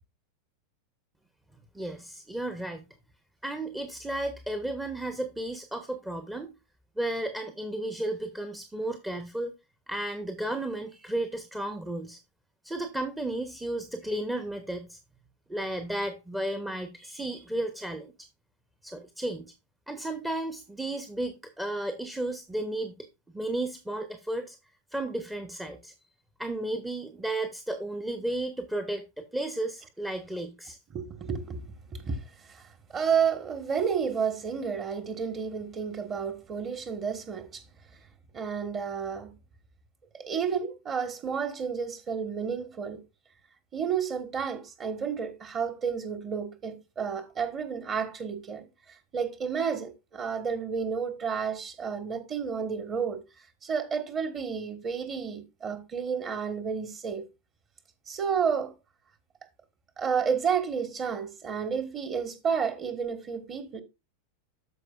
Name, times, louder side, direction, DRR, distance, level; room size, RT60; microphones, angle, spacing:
voice 1, 1.7-2.8 3.4-6.5 7.0-9.5 9.9-12.2 12.6-15.0 15.5-18.1 18.8-19.5 19.9-22.9 23.3-24.6 24.9-25.9 26.4-30.8, right 1 dB, 5° right, 0.9 m, -33 dB
voice 2, 30.9-32.6 32.9-37.6 38.3-39.3 40.1-43.0 43.7-48.7 49.1-53.2 53.6-57.3 58.1-58.7 60.0-63.8, right 6 dB, 25° right, 1.4 m, -31 dB
13.5 x 4.8 x 2.4 m
figure-of-eight pair, 90°, 0 cm